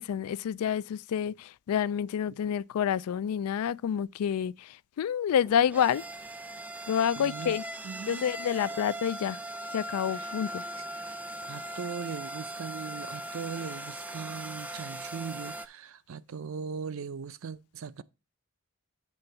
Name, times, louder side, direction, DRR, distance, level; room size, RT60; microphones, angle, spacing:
voice 1, 0.0-6.0 6.9-7.6 8.1-9.4 9.7-10.6, left 8 dB, 75° left, 0.3 m, -28 dB
sound 1, 5.3-15.7, right 1 dB, 5° right, 0.4 m, -39 dB
voice 2, 7.2-7.6 7.8-8.6 10.1-10.3 11.4-18.0, right 6 dB, 65° right, 0.5 m, -39 dB
8.3 x 3.5 x 6.6 m
head